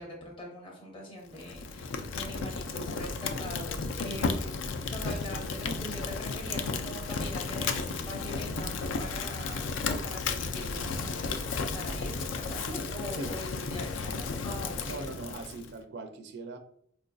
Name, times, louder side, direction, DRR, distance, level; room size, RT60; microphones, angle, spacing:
voice 1, 0.0-15.0, left 1 dB, 25° left, -3 dB, 0.7 m, -42 dB
Fire, 1.3-15.7, left 4 dB, 70° left, 0.4 m, -34 dB
voice 2, 4.0-4.4 13.1-13.4 14.9-16.6, right 2 dB, 60° right, 6 dB, 0.4 m, -40 dB
4.3 x 2.6 x 2.2 m, 0.65 s
head